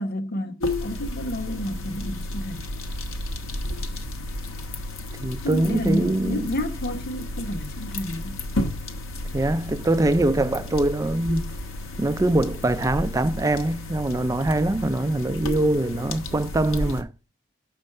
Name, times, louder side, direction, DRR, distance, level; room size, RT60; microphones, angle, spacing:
voice 1, 0.0-2.7 5.4-8.4, equal, 50° left, 1.0 m, -30 dB
sound 1, 0.6-17.0, left 1 dB, 80° left, 1.3 m, -32 dB
voice 2, 5.2-6.5 9.3-11.5 12.0-17.1, right 1 dB, 15° right, 0.3 m, -23 dB
6.4 x 5.3 x 6.5 m
head